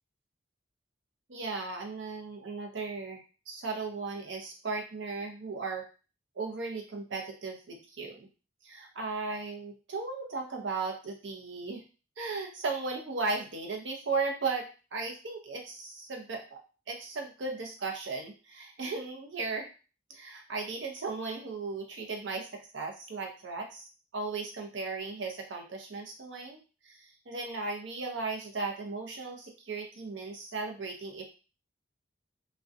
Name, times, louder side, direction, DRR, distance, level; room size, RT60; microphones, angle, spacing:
voice 1, 1.3-5.9 6.4-8.3 8.6-11.8 12.2-16.6 16.9-19.7 20.1-26.6 26.8-31.2, right 3 dB, 70° right, 2 dB, 0.6 m, -36 dB
2.5 x 2.1 x 2.4 m, 0.34 s
head